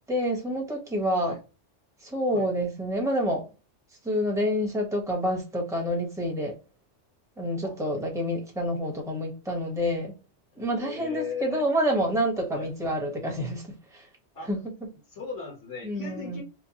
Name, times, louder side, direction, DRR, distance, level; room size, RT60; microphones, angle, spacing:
voice 1, 0.1-1.3 2.0-3.5 4.0-6.6 7.4-10.1 10.6-14.1 14.5-14.7 15.8-16.4, equal, 5° right, 1.0 m, -28 dB
voice 2, 10.8-11.6 12.5-12.7 14.3-14.5 15.1-16.4, left 4 dB, 70° left, 1.5 m, -36 dB
4.3 x 2.2 x 2.9 m
omnidirectional pair, 1.3 m